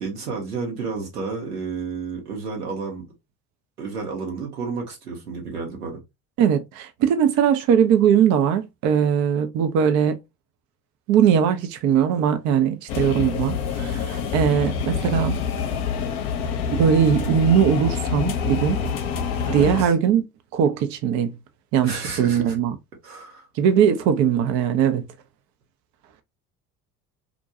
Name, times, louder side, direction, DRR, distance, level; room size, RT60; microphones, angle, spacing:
voice 1, 0.0-3.1 3.8-6.0 19.5-19.9 21.8-22.6 23.0-23.5, right 4 dB, 80° right, 1.0 m, -31 dB
voice 2, 6.4-10.2 11.1-15.4 16.7-18.8 19.5-20.2 20.5-21.3 21.7-22.7 23.6-25.1, right 8 dB, 40° right, 0.4 m, -20 dB
sound 1, 12.9-19.8, left 6 dB, 55° left, 0.7 m, -26 dB
2.5 x 2.2 x 2.6 m
figure-of-eight pair, 60°, 46 cm